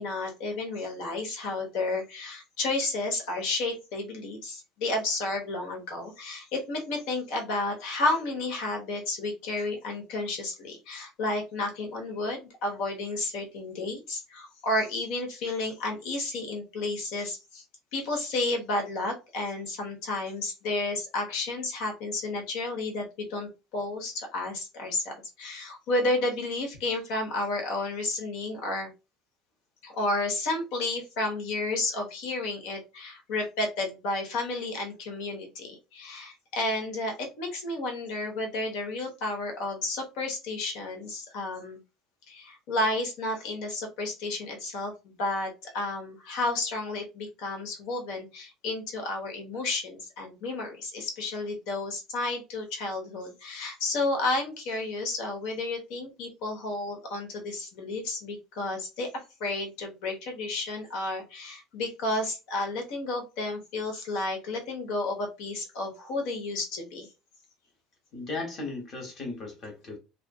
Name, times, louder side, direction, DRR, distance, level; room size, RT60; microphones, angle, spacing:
voice 1, 0.0-17.6 17.9-28.9 29.8-41.8 42.3-67.1, left 2 dB, 70° left, 1.0 m, -32 dB
voice 2, 68.1-70.0, left 3 dB, 35° left, 1.1 m, -36 dB
2.4 x 2.4 x 2.3 m
cardioid pair, 140°, 0 cm